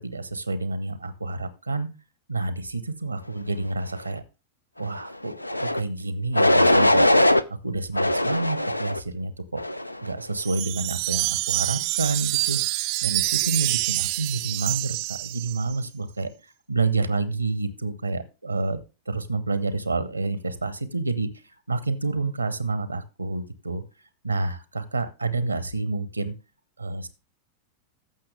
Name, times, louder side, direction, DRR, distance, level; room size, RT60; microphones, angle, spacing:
voice 1, 0.0-1.9 2.3-4.2 4.8-7.1 7.6-9.6 10.0-18.8 19.1-21.3 21.7-23.8 24.2-26.3 26.8-27.1, right 3 dB, 85° right, 14 dB, 0.9 m, -29 dB
sound 1, 5.4-5.8 6.3-7.4 8.0-9.0 9.6-10.0, left 1 dB, 85° left, 0.4 m, -20 dB
Wind chime, 10.4-15.8, right 23 dB, 45° right, 0.4 m, -27 dB
14.0 x 6.0 x 3.3 m, 0.30 s
figure-of-eight pair, 90°, 0 cm